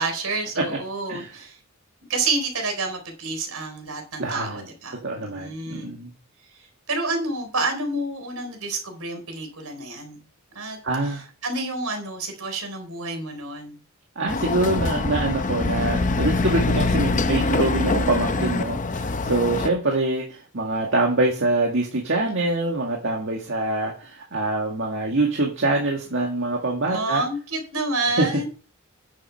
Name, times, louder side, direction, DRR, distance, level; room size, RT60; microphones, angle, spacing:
voice 1, 0.0-1.6 2.1-6.0 6.5-10.2 10.5-10.8 11.0-13.8 26.9-28.5, right 3 dB, 85° right, 4 dB, 4.1 m, -29 dB
voice 2, 4.2-4.7 5.0-6.1 10.8-11.2 14.2-27.2 28.2-28.3, right 2 dB, 60° right, 0 dB, 1.9 m, -25 dB
Chatter / Car passing by / Motorcycle, 14.3-19.7, left 3 dB, 35° left, 0.7 m, -24 dB
9.8 x 7.6 x 5.8 m, 0.38 s
head